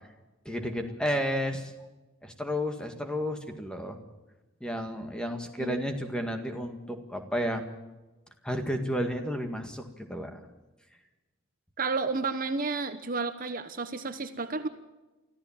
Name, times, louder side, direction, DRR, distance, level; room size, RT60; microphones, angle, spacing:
voice 1, 0.5-1.7 2.2-4.0 4.6-7.6 8.4-10.4, equal, 5° left, 5 dB, 1.9 m, -32 dB
voice 2, 11.8-14.7, right 4 dB, 40° right, 9 dB, 1.1 m, -31 dB
24.5 x 14.5 x 7.3 m, 1.1 s
head